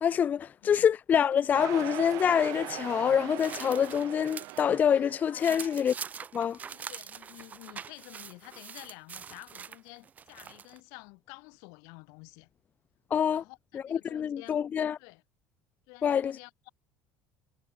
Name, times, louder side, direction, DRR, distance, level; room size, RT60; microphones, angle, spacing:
voice 1, 0.0-5.9 6.3-6.6 13.1-13.4 13.7-15.0 16.0-16.4, left 8 dB, 30° left, 0.7 m, -26 dB
sound 1, 1.5-5.6, right 19 dB, 60° right, 4.8 m, -40 dB
sound 2, 2.5-4.7 5.0-10.8, right 7 dB, 25° right, 3.2 m, -44 dB
voice 2, 5.3-5.8 6.7-12.5 13.2-13.6 13.8-14.6 15.0-15.2 15.9-16.7, left 33 dB, 80° left, 5.1 m, -50 dB
sound 3, 5.5-8.0, right 40 dB or more, 85° right, 5.6 m, -56 dB
cardioid pair, 160°, 6 cm